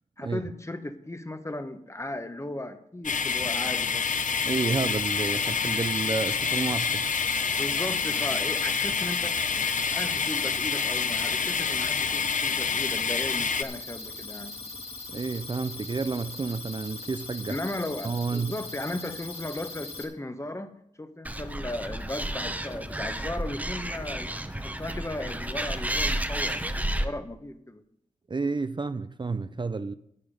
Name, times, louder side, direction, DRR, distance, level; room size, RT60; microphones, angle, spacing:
voice 1, 0.2-4.1 7.6-14.5 17.5-20.7 21.0-27.8, left 1 dB, 20° left, 1.0 m, -36 dB
sound 1, 3.0-13.6, left 6 dB, 75° left, 0.7 m, -27 dB
sound 2, 4.0-20.0, left 3 dB, 45° left, 2.3 m, -40 dB
voice 2, 4.5-7.2 15.1-17.5 18.0-18.6 28.3-29.9, right 4 dB, 35° right, 0.5 m, -30 dB
Animal, 21.2-27.0, right 1 dB, 10° right, 1.0 m, -31 dB
11.0 x 9.7 x 5.2 m
wide cardioid pair, 70°, 13 cm